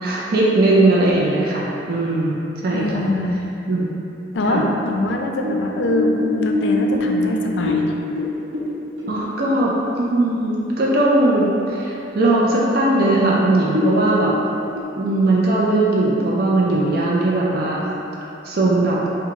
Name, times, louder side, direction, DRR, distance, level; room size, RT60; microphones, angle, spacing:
voice 1, 0.0-3.0 3.7-3.9 4.5-4.6 9.1-14.3 15.0-17.8 18.4-19.0, right 2 dB, 55° right, -5 dB, 0.5 m, -19 dB
voice 2, 2.7-3.4 4.3-7.9, left 1 dB, 65° left, 2 dB, 0.4 m, -23 dB
sound 1, 4.6-10.2 10.5-10.6 11.0-11.6 12.0-12.1 12.7-12.8 13.1-13.3 13.6-14.8, left 2 dB, 85° right, 0.9 m, -24 dB
4.8 x 2.3 x 3.6 m, 2.7 s
head